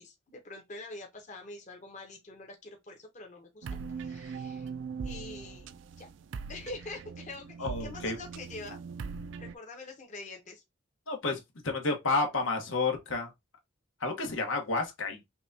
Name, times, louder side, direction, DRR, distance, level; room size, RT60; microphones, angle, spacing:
voice 1, 0.0-3.7 4.0-4.7 5.0-6.1 6.5-8.8 9.4-10.6, left 2 dB, 40° left, 0.9 m, -45 dB
sound 1, 3.6-9.5, right 5 dB, 65° right, 0.3 m, -41 dB
voice 2, 7.6-8.1 11.1-11.4 11.6-13.3 14.0-15.2, left 3 dB, 80° left, 1.2 m, -30 dB
5.9 x 2.3 x 2.7 m
head